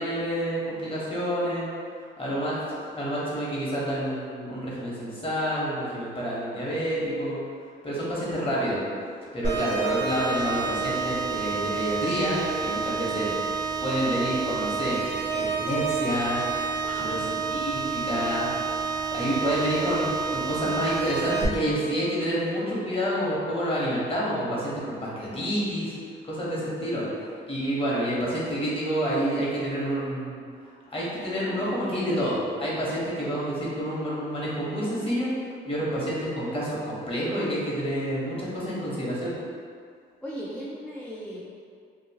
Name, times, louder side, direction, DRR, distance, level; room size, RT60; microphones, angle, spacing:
voice 1, 0.0-1.7 2.2-2.6 2.9-7.4 7.8-8.8 9.3-13.3 13.8-15.0 15.3-16.4 16.9-17.2 17.5-18.5 19.1-25.9 26.2-27.1 27.5-30.4 30.9-35.3 35.6-39.4, equal, 25° left, -7 dB, 1.0 m, -28 dB
sound 1, 9.4-21.4, right 5 dB, 65° right, 0.8 m, -29 dB
voice 2, 16.8-17.1 27.0-27.2 40.2-41.5, equal, 10° left, -7 dB, 0.3 m, -37 dB
2.8 x 2.6 x 2.8 m, 2.2 s
cardioid pair, 90°, 20 cm